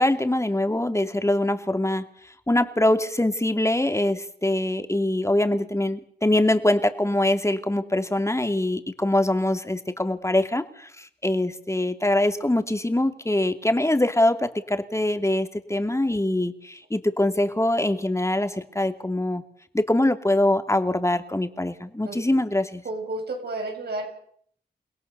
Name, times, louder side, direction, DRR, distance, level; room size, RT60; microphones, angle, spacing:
voice 1, 0.0-2.1 2.5-19.4 19.7-22.8, left 1 dB, 15° left, 7 dB, 2.7 m, -23 dB
voice 2, 22.8-24.1, right 2 dB, 75° right, 3 dB, 7.1 m, -31 dB
29.5 x 17.0 x 6.9 m, 0.64 s
cardioid pair, 45°, 17 cm